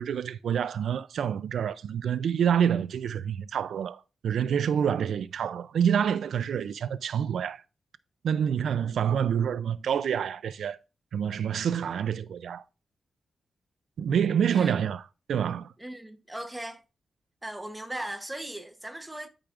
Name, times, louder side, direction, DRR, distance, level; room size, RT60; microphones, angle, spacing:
voice 1, 0.0-7.6 8.2-10.8 11.1-12.6 14.0-15.0 15.3-15.7, right 8 dB, 90° right, 0.3 m, -27 dB
voice 2, 14.5-14.8 15.8-16.8 17.4-19.3, right 1 dB, 10° right, 0.8 m, -38 dB
12.0 x 4.9 x 2.4 m
wide cardioid pair, 130°, 0 cm